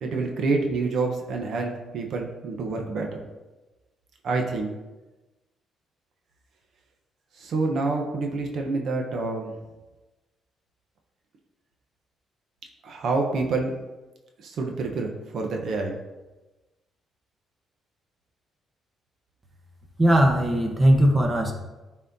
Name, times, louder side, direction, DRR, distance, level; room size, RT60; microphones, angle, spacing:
voice 1, 0.0-3.2 4.2-4.7 7.4-9.5 12.8-13.7 14.4-16.0, right 3 dB, 65° right, 2 dB, 0.9 m, -27 dB
voice 2, 20.0-21.5, right 1 dB, 20° right, 2 dB, 1.2 m, -19 dB
11.0 x 4.1 x 2.7 m, 1.1 s
cardioid pair, 90°, 0 cm